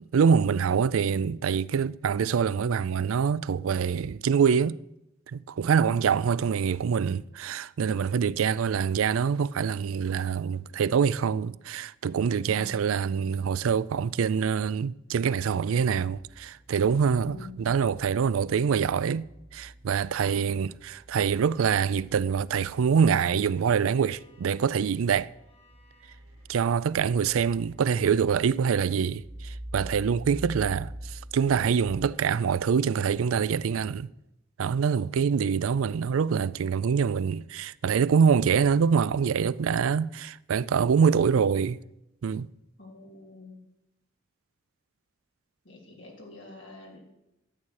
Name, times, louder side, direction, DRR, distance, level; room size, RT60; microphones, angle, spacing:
voice 1, 0.0-4.8 5.3-19.2 19.5-25.3 26.5-34.1 34.6-41.8 42.2-42.5, right 6 dB, 90° right, 0.4 m, -25 dB
voice 2, 5.8-6.2 12.4-12.8 17.2-17.8 42.8-43.6 45.6-47.0, left 3 dB, 60° left, 3.7 m, -46 dB
sound 1, 16.1-32.1, right 1 dB, 20° right, 0.7 m, -46 dB
Bowed string instrument, 23.2-28.1, left 2 dB, 30° left, 4.5 m, -63 dB
12.0 x 8.6 x 6.4 m
head